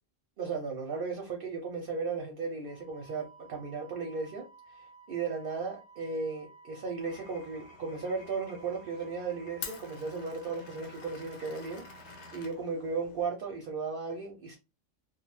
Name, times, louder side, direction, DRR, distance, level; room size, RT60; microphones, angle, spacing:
voice 1, 0.4-4.8 5.1-14.6, right 4 dB, 55° right, 0.6 m, -36 dB
Wind instrument woodwind instrument, 2.6-12.5, right 5 dB, 35° left, 0.9 m, -55 dB
Glass, 7.0-13.3, left 6 dB, 65° left, 0.9 m, -48 dB
2.3 x 2.3 x 3.0 m
omnidirectional pair, 1.3 m